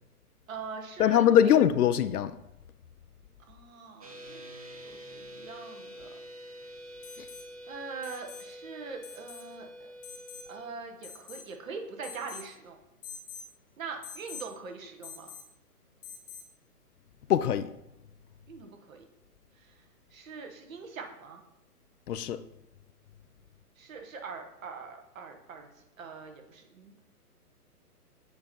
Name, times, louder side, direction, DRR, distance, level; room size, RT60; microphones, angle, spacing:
voice 1, 0.5-1.6 3.5-4.5 4.8-6.2 7.7-9.9 10.5-12.8 13.8-15.3 18.5-19.0 20.1-21.4 23.8-25.7 26.0-27.0, right 5 dB, 55° right, 1.2 m, -42 dB
voice 2, 1.0-2.4 7.2-7.3 17.3-17.7 22.1-22.4, left 10 dB, 70° left, 0.5 m, -22 dB
sound 1, 4.0-10.7, equal, 25° right, 0.4 m, -46 dB
Alarm, 7.0-7.5 8.0-8.5 9.0-9.5 10.0-10.5 11.0-11.5 12.0-12.5 13.0-13.5 14.0-14.5 15.0-15.5 16.0-16.5 18.3-18.4, left 6 dB, 35° left, 0.7 m, -46 dB
7.8 x 2.9 x 5.1 m
hypercardioid pair, 135°, 47 cm